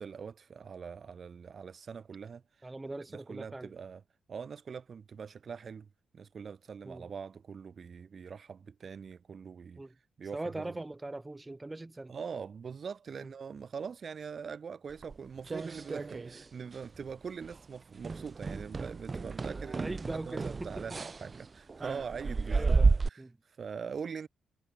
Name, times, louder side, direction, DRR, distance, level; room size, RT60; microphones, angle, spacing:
voice 1, 0.0-2.7 3.1-4.0 4.3-5.9 6.1-9.8 10.2-10.8 12.1-23.2 23.5-24.3, right 6 dB, 50° right, 3.3 m, -43 dB
voice 2, 2.6-3.7 6.8-7.1 9.8-9.9 10.3-12.1 13.2-13.3 19.5-21.0 21.8-22.0 22.5-22.9 23.2-23.4, right 2 dB, 15° right, 4.0 m, -41 dB
sound 1, 15.0-16.5 16.7-17.1 17.4-17.6 18.0-23.1, right 4 dB, 30° right, 0.9 m, -31 dB
cardioid pair, 105°, 0 cm